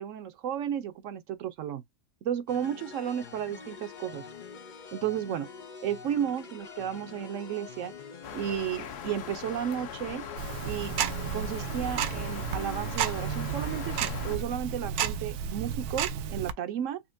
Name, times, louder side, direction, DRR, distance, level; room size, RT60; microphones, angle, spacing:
voice 1, 0.0-1.8 2.2-4.2 4.9-5.5 5.8-7.9 8.3-10.2 10.6-11.0 11.3-17.0, right 9 dB, 65° right, 0.9 m, -33 dB
sound 1, 2.5-14.4, left 6 dB, 85° left, 0.4 m, -46 dB
sound 2, 8.2-14.4, left 7 dB, 55° left, 0.7 m, -40 dB
Tick-tock, 10.4-16.5, right 8 dB, 85° right, 1.1 m, -32 dB
4.3 x 2.8 x 2.6 m
omnidirectional pair, 1.6 m